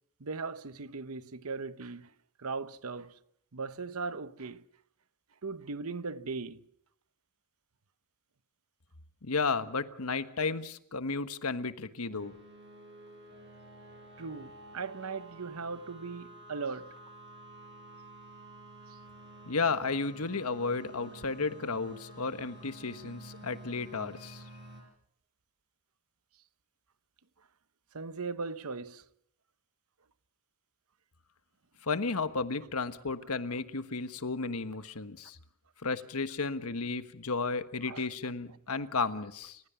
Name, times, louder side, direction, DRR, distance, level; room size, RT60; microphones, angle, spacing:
voice 1, 0.2-2.1 2.4-3.2 3.5-4.7 5.4-6.6 14.2-17.0 18.9-19.0 27.9-29.0 37.8-38.1, right 4 dB, 80° right, 1.0 m, -38 dB
voice 2, 9.2-12.3 19.5-24.4 31.8-35.4 35.8-39.6, left 4 dB, 85° left, 1.3 m, -33 dB
sound 1, 12.1-24.8, right 1 dB, 55° right, 7.6 m, -51 dB
30.0 x 15.5 x 6.9 m
head